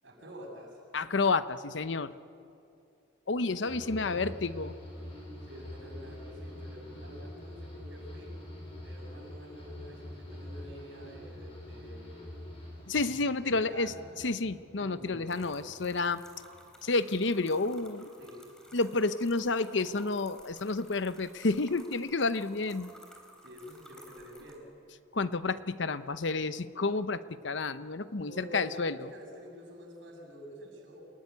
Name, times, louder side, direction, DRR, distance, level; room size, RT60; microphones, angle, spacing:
voice 1, 0.0-0.8 3.4-4.3 5.4-8.4 8.8-12.7 13.4-14.0 14.7-15.7 18.2-18.5 23.4-24.7 28.2-31.0, equal, 80° right, 0 dB, 7.6 m, -48 dB
voice 2, 0.9-2.1 3.3-4.7 12.9-16.2 16.8-18.1 18.7-22.9 25.1-29.1, left 3 dB, 70° left, 12 dB, 0.8 m, -30 dB
sound 1, 3.6-17.0 17.3-17.9, left 1 dB, 30° left, 7.6 m, -46 dB
sound 2, 15.3-24.5, equal, 5° left, 3.5 m, -55 dB
28.0 x 18.5 x 9.8 m, 2.6 s
head